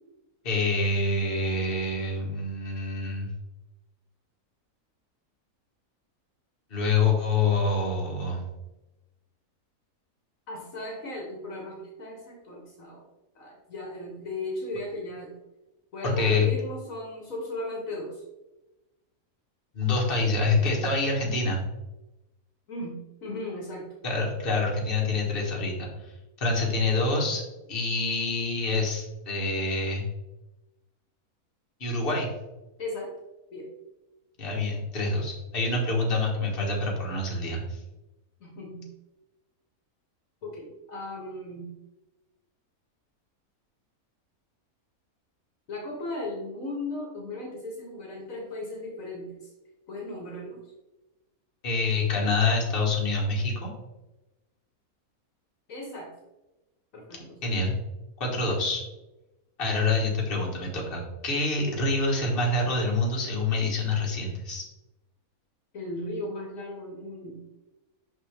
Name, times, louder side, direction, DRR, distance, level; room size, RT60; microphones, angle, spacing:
voice 1, 0.4-3.3 6.7-8.4 16.0-16.5 19.7-21.6 24.0-26.1 26.4-27.4 27.7-30.0 31.8-32.3 34.4-37.8 51.6-53.7 57.1-57.7 58.2-58.8 59.6-64.6, left 3 dB, 40° left, -1 dB, 1.6 m, -26 dB
voice 2, 10.5-13.0 13.3-15.3 15.9-18.2 22.7-23.9 32.8-33.1 33.5-33.7 38.4-38.9 40.4-41.7 45.7-49.5 49.9-50.6 55.7-56.1 56.9-57.4 65.7-67.4, left 1 dB, 65° left, 0 dB, 1.5 m, -36 dB
6.0 x 5.6 x 3.4 m, 1.0 s
omnidirectional pair, 1.5 m